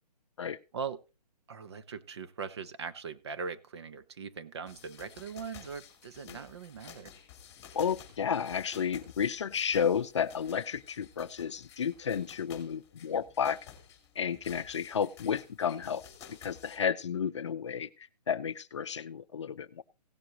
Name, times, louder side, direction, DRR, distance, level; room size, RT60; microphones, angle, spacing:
voice 1, 0.7-1.0 1.5-7.1, right 6 dB, 40° right, 1.0 m, -40 dB
sound 1, 4.7-16.8, left 8 dB, 15° left, 2.4 m, -53 dB
voice 2, 7.7-13.6 14.2-16.0 16.3-19.8, left 7 dB, 45° left, 0.7 m, -32 dB
17.0 x 7.7 x 2.9 m
hypercardioid pair, 165°, 21 cm